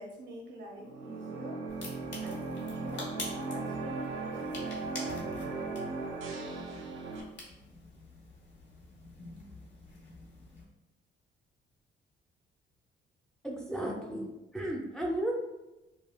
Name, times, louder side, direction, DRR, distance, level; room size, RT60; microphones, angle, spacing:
voice 1, 0.0-1.6 2.2-5.7, right 1 dB, 65° right, 0 dB, 1.0 m, -47 dB
sound 1, 0.8-7.2, right 3 dB, 80° right, 0.5 m, -37 dB
sound 2, 1.7-10.6, left 2 dB, 60° left, 1.2 m, -47 dB
voice 2, 13.4-15.4, right 1 dB, 5° left, -2 dB, 0.6 m, -34 dB
5.2 x 2.2 x 2.2 m, 1.0 s
cardioid pair, 90°, 20 cm